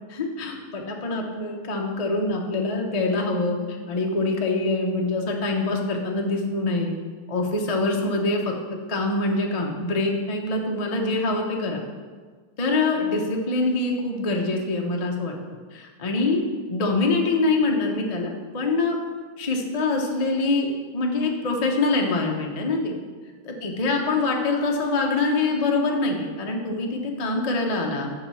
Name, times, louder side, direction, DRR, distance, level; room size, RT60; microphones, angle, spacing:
voice 1, 0.1-3.6 3.9-6.9 7.3-8.5 8.9-11.8 12.6-15.3 16.0-16.4 16.7-19.0 19.4-22.9 23.4-28.1, left 3 dB, 55° left, 1 dB, 0.4 m, -24 dB
7.1 x 5.4 x 6.9 m, 1.5 s
omnidirectional pair, 2.3 m